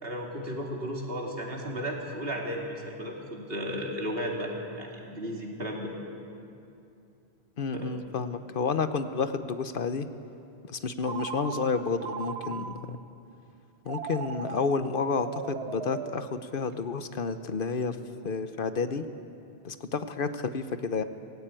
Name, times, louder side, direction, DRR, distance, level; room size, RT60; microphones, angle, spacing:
voice 1, 0.0-5.9 7.7-7.9, equal, 65° right, 0 dB, 2.9 m, -34 dB
voice 2, 7.6-10.1 10.7-13.0 13.9-18.0 18.2-19.0 19.6-21.0, left 4 dB, 60° left, 10 dB, 0.9 m, -30 dB
Telephone, 11.0-13.0 13.9-16.9, right 7 dB, 85° right, 1.0 m, -39 dB
18.0 x 16.5 x 8.9 m, 2.7 s
omnidirectional pair, 1.1 m